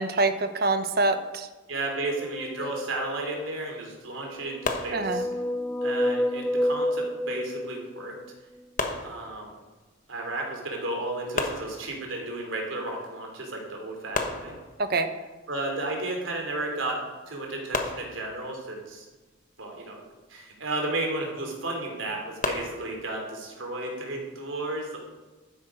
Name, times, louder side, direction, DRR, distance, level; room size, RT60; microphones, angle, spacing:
voice 1, 0.0-1.5 4.9-5.2 14.8-15.1, right 3 dB, 50° right, 9 dB, 0.9 m, -25 dB
voice 2, 1.7-5.3 5.8-8.2 9.0-9.5 10.1-14.5 15.5-19.0 19.6-20.0 20.3-25.0, right 2 dB, 80° right, 1 dB, 3.4 m, -33 dB
sound 1, 1.9-3.5 4.4-8.3, left 1 dB, 5° left, 0.5 m, -30 dB
sound 2, 4.6-5.6 8.8-9.8 11.3-12.3 14.1-15.1 17.7-18.7 22.4-23.0, left 3 dB, 40° left, 1.3 m, -33 dB
12.5 x 10.5 x 5.1 m, 1.2 s
head